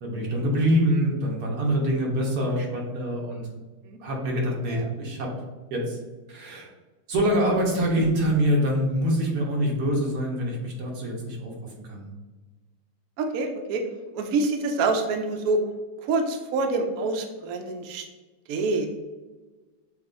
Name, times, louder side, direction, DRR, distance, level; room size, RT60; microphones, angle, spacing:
voice 1, 0.0-3.5 4.0-5.3 5.7-6.0 6.3-6.7 7.1-11.5 11.8-12.1, equal, 60° right, -1 dB, 1.4 m, -25 dB
voice 2, 13.2-13.8 14.1-15.6 16.0-18.1 18.5-18.9, right 3 dB, 85° right, 4 dB, 0.7 m, -26 dB
6.6 x 2.4 x 2.5 m, 1.2 s
omnidirectional pair, 2.1 m